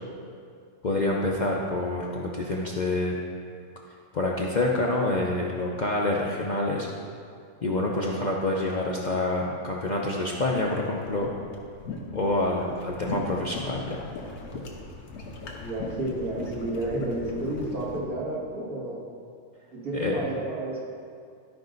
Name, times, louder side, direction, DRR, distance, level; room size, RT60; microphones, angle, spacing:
voice 1, 0.8-3.2 4.1-6.9 7.6-11.3 12.1-14.0 19.9-20.1, left 2 dB, 45° left, -3 dB, 0.6 m, -27 dB
sound 1, 10.0-18.0, left 3 dB, 85° left, 1.5 m, -39 dB
voice 2, 15.6-19.0 19.7-20.8, right 1 dB, 80° right, -6 dB, 2.5 m, -31 dB
12.5 x 5.3 x 4.0 m, 2.3 s
omnidirectional pair, 1.6 m